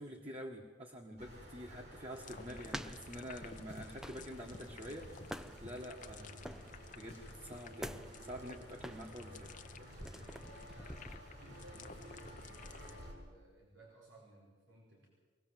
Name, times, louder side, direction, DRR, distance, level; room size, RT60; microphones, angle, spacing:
voice 1, 0.0-9.5, equal, 30° right, 0 dB, 1.9 m, -48 dB
sound 1, 1.2-13.1, equal, 65° right, 7.0 m, -53 dB
sound 2, 2.1-13.0, left 5 dB, 45° left, 0.8 m, -55 dB
sound 3, 2.6-11.2, equal, 5° right, 0.5 m, -50 dB
voice 2, 9.7-15.1, right 1 dB, 85° right, -2 dB, 4.8 m, -60 dB
23.5 x 18.5 x 7.8 m, 1.5 s
head